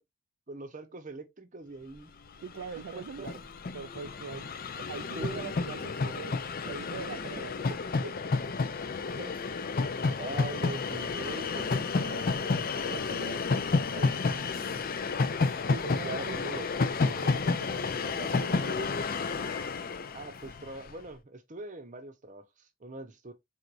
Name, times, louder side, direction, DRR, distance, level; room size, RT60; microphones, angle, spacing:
voice 1, 0.5-2.1 2.9-3.3 5.1-5.5 7.1-7.2 7.7-7.8 9.2-9.6 10.1-13.5 13.9-14.7 15.0-15.3 16.0-16.7 20.1-23.3, right 2 dB, 35° right, 0.8 m, -43 dB
Train, 2.3-2.4 2.5-20.9, left 4 dB, 40° left, 0.4 m, -31 dB
voice 2, 2.4-3.5 3.7-4.5 4.8-6.4 6.6-7.5 8.0-8.5 15.7-16.5 17.0-18.9, right 6 dB, 60° right, 0.3 m, -42 dB
4.6 x 3.8 x 2.5 m
head